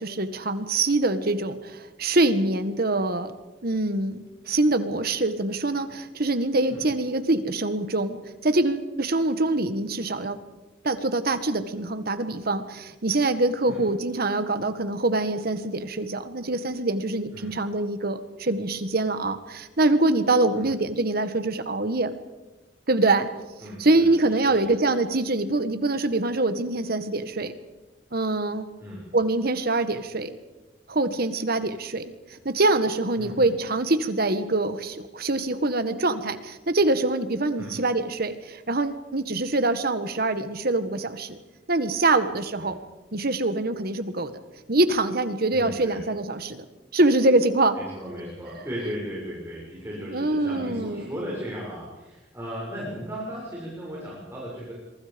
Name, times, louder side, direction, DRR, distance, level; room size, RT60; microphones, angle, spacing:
voice 1, 0.0-3.3 3.6-8.2 8.4-10.4 10.8-22.1 22.9-23.3 23.8-27.5 28.1-28.7 29.1-30.3 30.9-32.0 32.3-41.4 41.7-42.7 43.1-44.3 44.7-46.6 46.9-47.8 50.1-51.1, right 2 dB, 55° right, 10 dB, 1.6 m, -24 dB
voice 2, 23.6-24.7 28.8-29.0 33.2-33.5 37.6-37.7 42.6-42.7 45.5-46.0 47.7-54.7, equal, 15° right, -5 dB, 6.9 m, -36 dB
26.5 x 23.5 x 5.3 m, 1.1 s
head